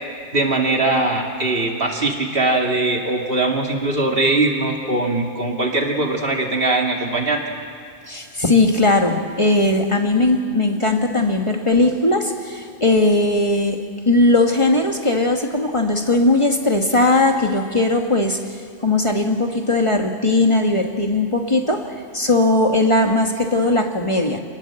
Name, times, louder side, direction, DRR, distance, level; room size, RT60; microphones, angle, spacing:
voice 1, 0.3-7.4, right 2 dB, 60° right, 1 dB, 2.6 m, -21 dB
voice 2, 8.1-13.8 14.0-24.4, left 2 dB, 30° left, 3 dB, 1.5 m, -18 dB
26.5 x 19.0 x 7.7 m, 2.1 s
omnidirectional pair, 1.1 m